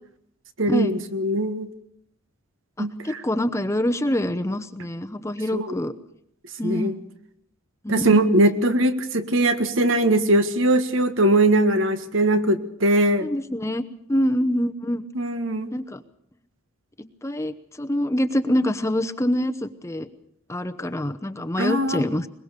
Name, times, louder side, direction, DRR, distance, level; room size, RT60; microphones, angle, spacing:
voice 1, 0.6-1.7 2.8-3.2 5.5-5.8 6.6-7.0 7.9-13.3 15.1-15.7 21.6-22.0, right 1 dB, 65° right, 9 dB, 1.7 m, -21 dB
voice 2, 2.8-5.9 6.6-6.9 7.8-8.3 13.2-13.8 14.1-15.1 15.7-16.0 17.2-20.1 20.5-22.3, left 1 dB, 15° left, 9 dB, 0.8 m, -25 dB
22.0 x 21.5 x 6.7 m, 0.71 s
head